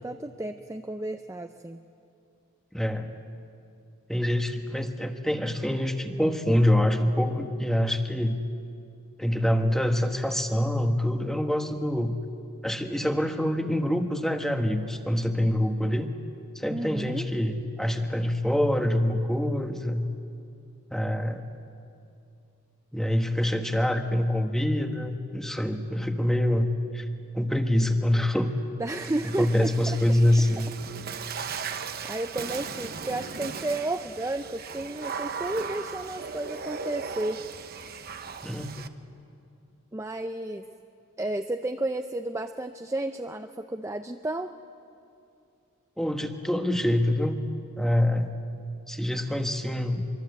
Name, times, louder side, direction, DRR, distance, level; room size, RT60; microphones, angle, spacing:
voice 1, 0.0-1.8 16.7-17.3 28.8-30.0 31.3-37.4 39.9-40.6 41.2-44.5, right 1 dB, 15° right, 6 dB, 0.5 m, -32 dB
voice 2, 2.7-3.1 4.1-8.4 9.2-12.2 12.6-16.1 16.5-20.1 20.9-21.5 22.9-27.0 27.3-28.5 29.4-30.7 38.4-38.7 46.0-47.4 47.8-48.4 48.9-50.0, left 1 dB, ahead, 5 dB, 1.2 m, -25 dB
Water / Splash splatter, 28.9-38.9, right 5 dB, 45° right, 0.9 m, -37 dB
25.0 x 24.0 x 8.2 m, 2.6 s
head